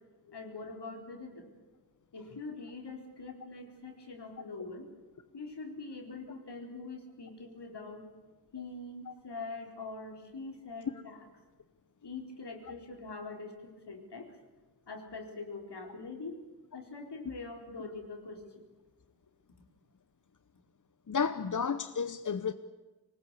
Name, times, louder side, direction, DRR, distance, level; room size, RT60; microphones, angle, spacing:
voice 1, 0.3-1.5 2.1-4.9 5.3-8.1 8.5-11.3 12.0-14.3 14.9-16.4 16.7-18.6, left 3 dB, 85° left, 4.4 m, -43 dB
voice 2, 21.1-22.5, left 6 dB, 50° left, 0.9 m, -32 dB
24.0 x 20.0 x 8.3 m
wide cardioid pair, 95°, 40 cm